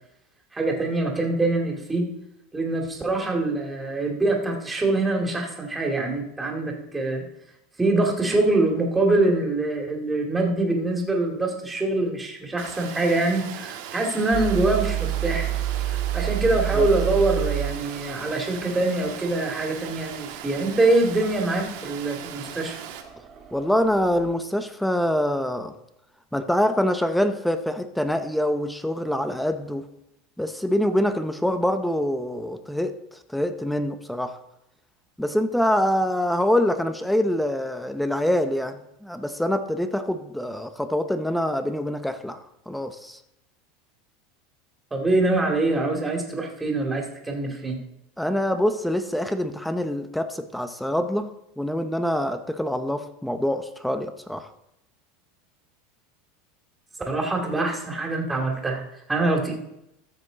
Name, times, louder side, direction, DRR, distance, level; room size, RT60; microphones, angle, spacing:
voice 1, 0.5-2.0 2.5-7.2 7.8-15.5 15.9-22.8 44.9-47.8 57.1-58.8 59.1-59.5, right 2 dB, 15° right, 1 dB, 2.5 m, -24 dB
Water, 12.6-23.0, right 10 dB, 75° right, 1.4 m, -39 dB
sound 1, 14.3-24.3, right 13 dB, 35° right, 2.1 m, -30 dB
voice 2, 23.5-25.7 26.3-29.9 30.4-32.9 33.3-34.4 35.2-42.4 42.7-43.2 48.2-54.5, left 1 dB, 5° left, 9 dB, 0.7 m, -25 dB
14.0 x 6.4 x 4.0 m, 0.83 s
supercardioid pair, 110°, 0 cm